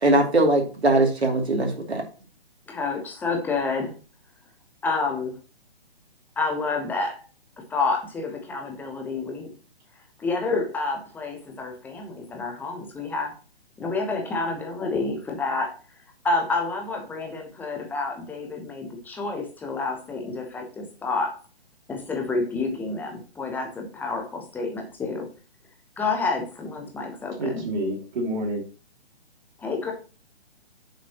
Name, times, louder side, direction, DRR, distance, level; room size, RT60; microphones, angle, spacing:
voice 1, 0.0-2.0, right 2 dB, 75° right, 2 dB, 2.6 m, -21 dB
voice 2, 2.7-3.9 4.8-5.3 6.4-7.2 7.7-9.5 10.2-13.3 13.8-15.8 16.2-21.4 21.9-25.3 26.0-27.6 29.6-29.9, left 3 dB, 5° left, 3 dB, 0.9 m, -29 dB
voice 3, 27.4-28.6, right 1 dB, 45° right, 0 dB, 2.7 m, -28 dB
9.3 x 6.8 x 2.9 m, 0.35 s
figure-of-eight pair, 135°, 32 cm